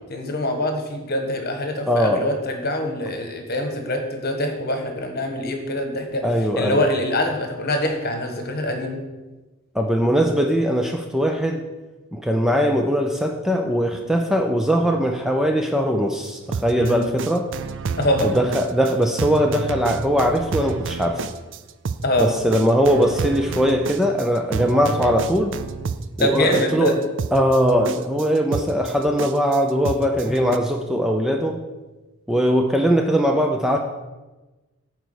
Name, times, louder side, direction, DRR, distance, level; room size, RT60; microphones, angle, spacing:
voice 1, 0.1-6.2 6.6-9.0 16.8-17.0 18.0-18.3 22.0-22.3 26.2-27.0 30.3-30.5, left 1 dB, 45° left, 4 dB, 1.3 m, -24 dB
voice 2, 1.9-2.2 6.2-6.8 9.7-11.6 12.1-17.5 18.2-21.2 22.2-25.6 26.2-27.0 27.3-31.6 32.3-33.8, equal, ahead, 3 dB, 0.5 m, -20 dB
sound 1, 16.3-30.6, right 5 dB, 55° right, 0.4 m, -30 dB
9.3 x 4.6 x 6.4 m, 1.1 s
head